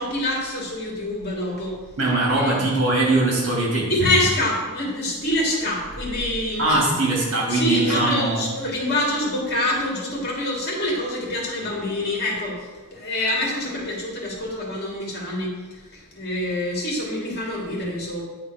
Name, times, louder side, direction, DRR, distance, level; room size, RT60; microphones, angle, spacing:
voice 1, 0.0-1.8 2.3-2.6 3.9-6.9 7.5-18.2, left 1 dB, 50° left, -3 dB, 2.6 m, -26 dB
voice 2, 2.0-3.9 6.6-8.4, right 2 dB, 65° right, -3 dB, 2.7 m, -21 dB
9.8 x 4.2 x 4.7 m, 1.3 s
head